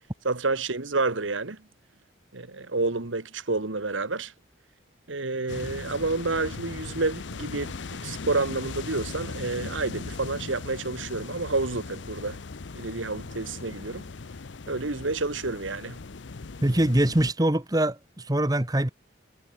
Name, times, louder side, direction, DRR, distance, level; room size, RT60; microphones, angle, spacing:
voice 1, 0.2-1.6 2.3-4.3 5.1-12.4 12.8-14.0 14.7-16.0, right 3 dB, 90° right, 1.7 m, -29 dB
sound 1, 5.5-17.3, left 4 dB, 70° left, 0.7 m, -38 dB
voice 2, 16.6-18.9, right 1 dB, 20° right, 1.2 m, -23 dB
head